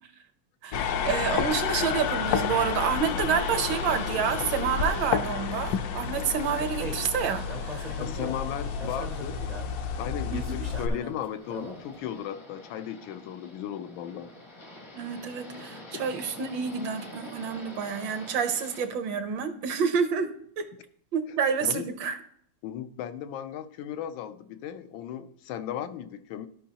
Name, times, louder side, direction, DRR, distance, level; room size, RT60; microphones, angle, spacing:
voice 1, 0.6-7.9 10.3-10.7 14.9-20.7 21.1-22.2, right 6 dB, 75° right, 9 dB, 1.5 m, -29 dB
sound 1, 0.7-10.9, left 7 dB, 70° left, 0.9 m, -30 dB
sound 2, 3.6-18.9, left 1 dB, 30° left, 0.5 m, -47 dB
sound 3, 6.8-7.1 7.5-8.4 8.8-9.7 10.3-11.8, right 2 dB, 50° right, 0.5 m, -40 dB
voice 2, 7.9-9.4 10.0-14.3 21.6-21.8 22.6-26.5, left 10 dB, 90° left, 11 dB, 1.4 m, -36 dB
14.0 x 5.4 x 2.8 m, 0.63 s
omnidirectional pair, 2.1 m